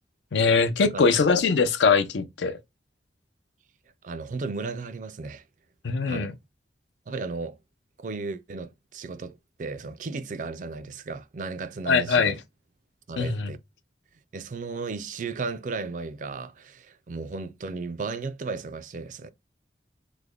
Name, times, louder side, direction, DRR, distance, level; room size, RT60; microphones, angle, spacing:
voice 1, 0.3-2.6 5.8-6.3 11.9-12.3 13.2-13.5, left 5 dB, 85° left, 0.5 m, -22 dB
voice 2, 4.0-5.4 6.0-6.3 7.1-7.6 8.0-12.3 13.1-13.6 14.3-19.3, right 4 dB, 45° right, 0.3 m, -35 dB
3.3 x 2.1 x 3.6 m
head